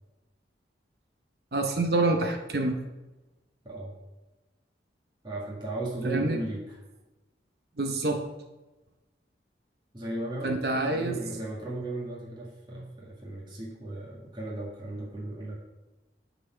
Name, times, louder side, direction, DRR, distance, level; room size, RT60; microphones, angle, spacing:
voice 1, 1.5-2.8 6.0-6.4 7.8-8.2 10.4-11.2, right 2 dB, 60° right, 3 dB, 0.8 m, -27 dB
voice 2, 5.2-6.8 9.9-15.6, right 2 dB, 25° right, -4 dB, 1.6 m, -36 dB
9.7 x 4.2 x 5.6 m, 1.1 s
head